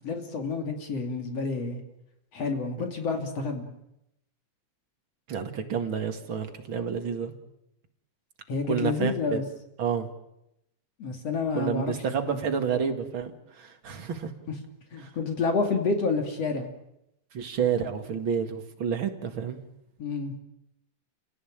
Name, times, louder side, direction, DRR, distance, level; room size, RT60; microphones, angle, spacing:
voice 1, 0.0-1.8 2.3-3.7 8.5-9.4 11.0-11.9 12.3-12.4 14.9-16.7 20.0-20.3, left 4 dB, 55° left, 4 dB, 3.6 m, -29 dB
voice 2, 5.3-7.3 8.7-9.4 9.8-10.1 11.5-14.3 15.0-15.1 17.3-19.6, right 7 dB, 45° right, 6 dB, 2.4 m, -29 dB
29.5 x 17.5 x 8.9 m, 0.85 s
omnidirectional pair, 3.5 m